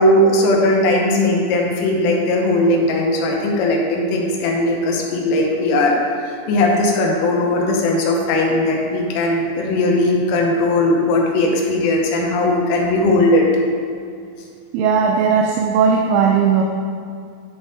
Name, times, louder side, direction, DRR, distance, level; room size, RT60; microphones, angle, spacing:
voice 1, 0.0-6.0 6.2-13.5, left 1 dB, 85° left, -1 dB, 3.4 m, -18 dB
voice 2, 14.7-16.6, right 6 dB, 85° right, 1 dB, 3.0 m, -16 dB
10.5 x 3.6 x 4.1 m, 2.3 s
omnidirectional pair, 5.5 m